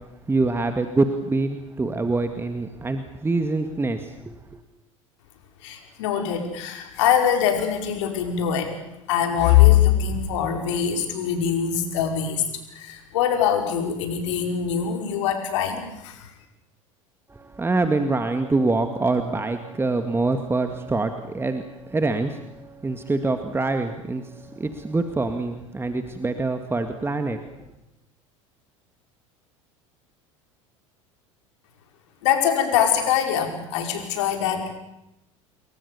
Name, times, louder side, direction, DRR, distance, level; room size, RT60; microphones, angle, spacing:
voice 1, 0.3-4.6 17.3-27.7, right 3 dB, 15° right, 7 dB, 2.1 m, -25 dB
voice 2, 5.6-8.7 9.1-12.4 12.7-16.3 32.2-34.8, left 9 dB, 65° left, 4 dB, 5.3 m, -22 dB
29.0 x 22.0 x 7.2 m, 0.88 s
figure-of-eight pair, 70°, 16 cm